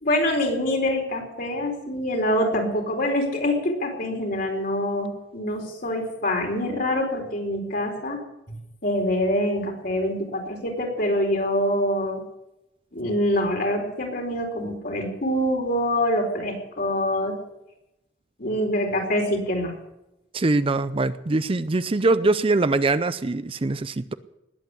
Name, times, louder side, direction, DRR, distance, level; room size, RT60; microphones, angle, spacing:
voice 1, 0.0-8.2 8.5-12.2 12.9-17.4 18.4-19.7, left 1 dB, 55° left, 1 dB, 4.5 m, -25 dB
voice 2, 20.3-24.1, right 2 dB, 30° right, 13 dB, 0.5 m, -23 dB
20.0 x 8.4 x 8.4 m, 0.89 s
head